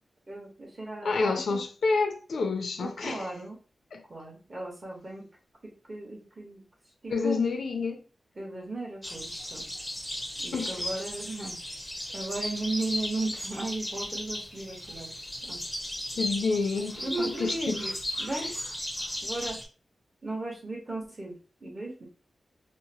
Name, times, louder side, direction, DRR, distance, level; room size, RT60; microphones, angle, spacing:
voice 1, 0.3-1.6 2.8-3.6 4.1-5.3 5.6-6.6 7.0-7.4 8.3-9.7 10.4-11.5 12.1-15.1 15.5-15.6 17.0-17.9 18.2-18.5 19.2-19.6 20.2-22.1, right 2 dB, 30° right, 1.1 m, -36 dB
voice 2, 1.0-3.3 3.9-4.0 7.1-8.0 10.5-10.9 16.2-17.8, left 4 dB, 80° left, 0.5 m, -28 dB
sound 1, 9.0-19.6, left 1 dB, 5° left, 0.6 m, -36 dB
2.8 x 2.0 x 2.8 m
wide cardioid pair, 110°, 0 cm